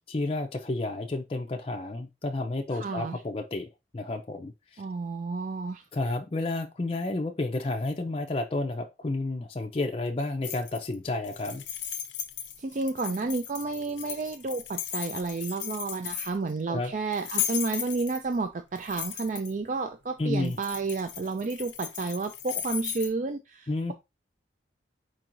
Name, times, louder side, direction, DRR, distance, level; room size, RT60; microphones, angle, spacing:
voice 1, 0.1-4.8 5.9-11.6 16.7-16.9 20.2-20.6 23.7-23.9, left 2 dB, 30° left, 0.5 m, -31 dB
voice 2, 2.7-3.2 4.8-5.8 12.6-23.9, right 3 dB, 40° right, 0.4 m, -31 dB
sound 1, 10.4-10.9 11.2-16.5 17.1-18.3 18.8-19.5 20.4-23.1, left 10 dB, 80° left, 0.6 m, -36 dB
4.5 x 4.4 x 2.6 m
head